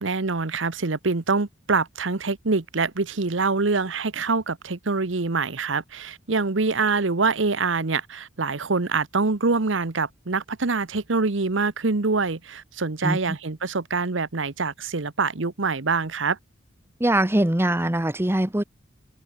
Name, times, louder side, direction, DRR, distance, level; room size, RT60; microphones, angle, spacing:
voice 1, 0.0-16.4, right 4 dB, 75° right, 1.1 m, -25 dB
voice 2, 17.0-18.6, right 1 dB, 10° right, 1.0 m, -22 dB
head